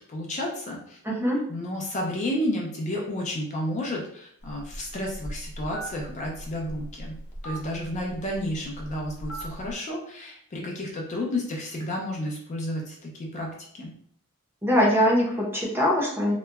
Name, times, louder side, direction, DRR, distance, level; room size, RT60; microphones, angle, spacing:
voice 1, 0.1-1.0 1.5-7.2 7.4-13.9, left 1 dB, 35° left, -1 dB, 0.4 m, -31 dB
voice 2, 1.0-1.4 14.6-16.3, equal, 10° right, -4 dB, 0.6 m, -22 dB
Telephone, 4.4-9.7, right 1 dB, 85° left, 0.6 m, -39 dB
2.8 x 2.1 x 2.2 m, 0.65 s
head